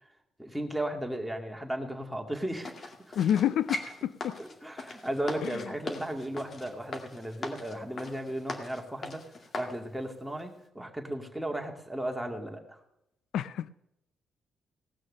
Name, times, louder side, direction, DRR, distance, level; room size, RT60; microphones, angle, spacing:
voice 1, 0.4-3.2 4.4-9.2 9.5-12.8, right 1 dB, ahead, 2.3 m, -35 dB
sound 1, 2.6-9.8 10.3-10.4, left 3 dB, 45° left, 2.1 m, -40 dB
voice 2, 3.2-4.4 5.4-5.6 13.3-13.7, left 10 dB, 75° left, 0.4 m, -29 dB
18.0 x 6.3 x 6.6 m
cardioid pair, 90°, 0 cm